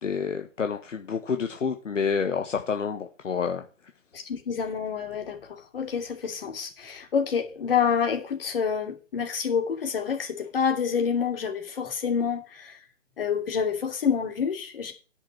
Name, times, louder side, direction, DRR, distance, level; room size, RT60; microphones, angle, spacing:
voice 1, 0.0-3.6, left 6 dB, 70° left, 1.4 m, -28 dB
voice 2, 4.1-12.8 13.2-14.9, left 7 dB, 45° left, 3.0 m, -28 dB
9.9 x 6.3 x 5.9 m
hypercardioid pair, 155°, 38 cm